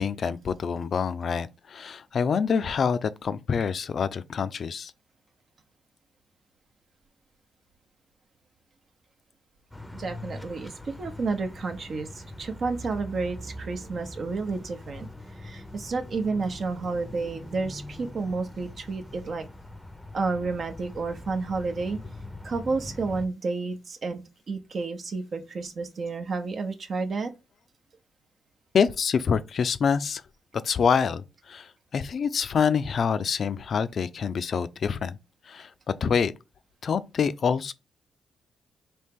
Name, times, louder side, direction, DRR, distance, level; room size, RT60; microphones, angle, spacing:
voice 1, 0.0-4.9 28.7-30.2 30.6-35.2 35.5-35.7 36.0-36.3 36.8-37.7, left 6 dB, 55° left, 0.4 m, -26 dB
sound 1, 9.7-23.3, left 1 dB, 5° left, 0.7 m, -42 dB
voice 2, 9.9-15.1 15.4-19.5 20.1-22.0 22.4-24.2 24.5-27.3, right 4 dB, 55° right, 0.7 m, -31 dB
4.3 x 2.9 x 3.6 m
cardioid pair, 90°, 0 cm